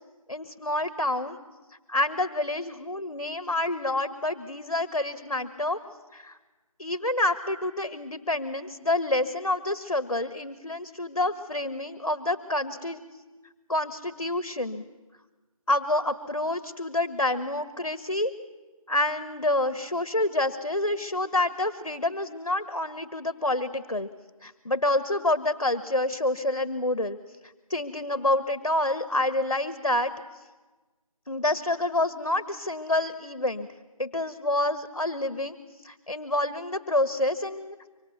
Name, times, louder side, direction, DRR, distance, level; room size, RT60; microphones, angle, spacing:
voice 1, 0.3-1.4 1.9-5.8 6.1-6.4 6.8-13.0 13.7-14.8 15.7-18.3 18.9-24.1 24.4-27.2 27.7-30.1 31.3-33.7 34.0-35.5 35.8-37.8, left 1 dB, 55° left, 12 dB, 1.4 m, -28 dB
25.0 x 24.5 x 6.9 m, 1.2 s
figure-of-eight pair, 170°, 19 cm